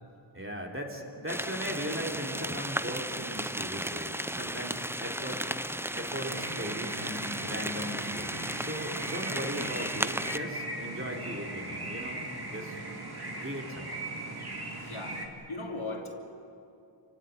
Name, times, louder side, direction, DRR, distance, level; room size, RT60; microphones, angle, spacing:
voice 1, 0.3-5.4 5.9-12.2 12.5-12.8 13.4-14.0, equal, 25° right, 0 dB, 3.6 m, -38 dB
sound 1, 1.3-10.4, right 1 dB, 5° right, 0.6 m, -35 dB
sound 2, 6.3-15.3, right 2 dB, 50° right, 2.9 m, -39 dB
voice 2, 14.8-15.2 15.5-16.1, left 2 dB, 90° left, 1 dB, 3.0 m, -37 dB
28.0 x 16.5 x 9.6 m, 2.7 s
wide cardioid pair, 50°, 47 cm